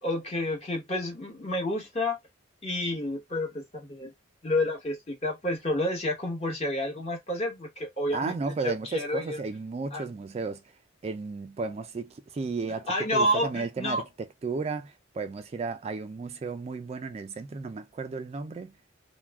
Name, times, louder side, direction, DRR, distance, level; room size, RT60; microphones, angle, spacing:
voice 1, 0.0-2.2 2.6-4.1 4.4-8.3 8.6-9.4 9.9-10.0 12.9-14.0, left 1 dB, 35° left, 1.1 m, -29 dB
voice 2, 8.1-10.6 11.0-18.7, right 4 dB, 35° right, 0.3 m, -34 dB
2.3 x 2.1 x 3.3 m
head